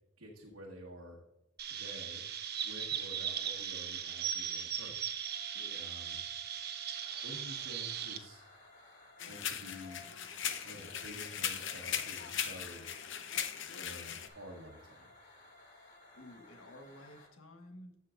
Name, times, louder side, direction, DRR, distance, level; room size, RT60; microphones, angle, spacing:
voice 1, 0.2-1.2 1.6-2.2 2.6-5.0 5.8-6.2 7.2-8.4 9.2-10.0 10.6-12.9 13.7-15.1, equal, 75° right, -2 dB, 1.4 m, -50 dB
Chirp tweet, 1.6-8.2, right 8 dB, 50° right, 0.9 m, -38 dB
sound 1, 5.3-17.3, left 2 dB, 40° left, 3.4 m, -59 dB
voice 2, 5.5-5.9 16.1-18.0, left 1 dB, 85° left, 4 dB, 1.3 m, -53 dB
sound 2, 9.2-14.3, left 9 dB, 60° left, 0.8 m, -39 dB
15.0 x 5.7 x 2.5 m, 0.90 s
head